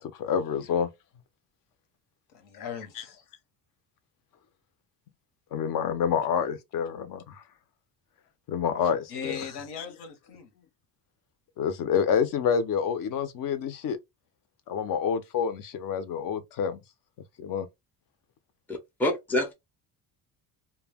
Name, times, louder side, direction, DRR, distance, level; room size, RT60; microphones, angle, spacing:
voice 1, 0.0-0.9 3.0-3.1 5.5-7.4 8.5-9.5 9.8-9.9 11.6-14.0 14.7-16.8 17.4-17.7, left 7 dB, 60° left, 0.6 m, -28 dB
voice 2, 2.3-3.2 9.1-10.5, left 6 dB, 80° left, 1.0 m, -39 dB
voice 3, 18.7-19.5, left 1 dB, 5° left, 0.4 m, -27 dB
2.2 x 2.1 x 3.3 m
cardioid pair, 155°, 38 cm